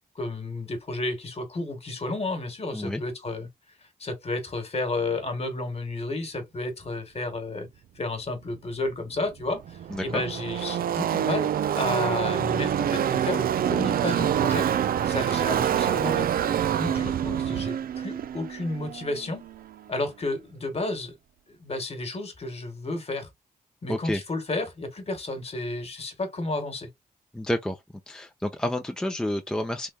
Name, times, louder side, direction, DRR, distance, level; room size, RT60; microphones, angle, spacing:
voice 1, 0.1-3.5 4.0-7.7 8.0-16.3 16.7-19.5 19.9-21.2 21.5-23.3 23.8-26.9, left 2 dB, 40° left, 1.4 m, -32 dB
Car passing by / Race car auto racing, 8.9-9.0 9.2-19.7, right 10 dB, 70° right, 0.4 m, -26 dB
voice 2, 9.9-10.2 23.9-24.2 27.3-27.8 28.1-29.9, left 1 dB, 5° left, 0.6 m, -29 dB
3.5 x 3.1 x 2.3 m
cardioid pair, 85°, 15 cm